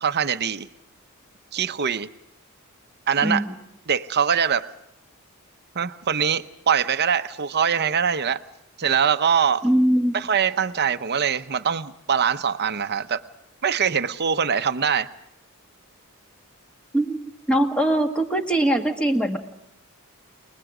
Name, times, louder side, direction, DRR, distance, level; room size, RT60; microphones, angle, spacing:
voice 1, 0.0-0.7 1.5-2.1 3.1-3.4 3.9-4.7 5.7-8.4 8.8-9.6 10.1-13.2 13.6-15.1, right 7 dB, 50° right, 11 dB, 0.8 m, -23 dB
voice 2, 3.2-3.6 9.6-10.2 16.9-19.4, right 1 dB, 5° left, 4 dB, 1.8 m, -22 dB
29.5 x 20.5 x 5.0 m, 0.81 s
head